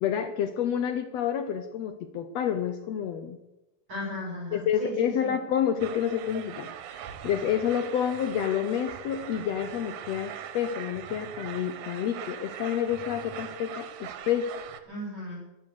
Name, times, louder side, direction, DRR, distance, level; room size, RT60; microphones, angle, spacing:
voice 1, 0.0-3.4 4.5-6.7 7.2-14.5, left 9 dB, 70° left, 9 dB, 1.8 m, -29 dB
voice 2, 3.9-5.3 14.9-15.4, left 1 dB, 40° right, -2 dB, 8.1 m, -36 dB
sound 1, 5.8-14.8, right 9 dB, 85° right, 2.5 m, -41 dB
13.0 x 11.0 x 7.0 m, 0.97 s
omnidirectional pair, 3.3 m